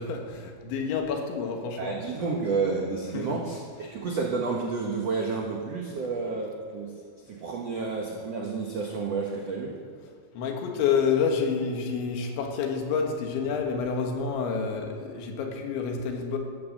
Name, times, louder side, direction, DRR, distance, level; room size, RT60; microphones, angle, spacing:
voice 1, 0.0-2.0 3.1-3.4 6.0-6.1 10.3-16.4, left 6 dB, 90° left, 3 dB, 3.9 m, -28 dB
voice 2, 1.8-6.9 7.3-9.7, right 4 dB, 85° right, -1 dB, 1.4 m, -30 dB
14.5 x 10.5 x 7.3 m, 2.1 s
omnidirectional pair, 5.1 m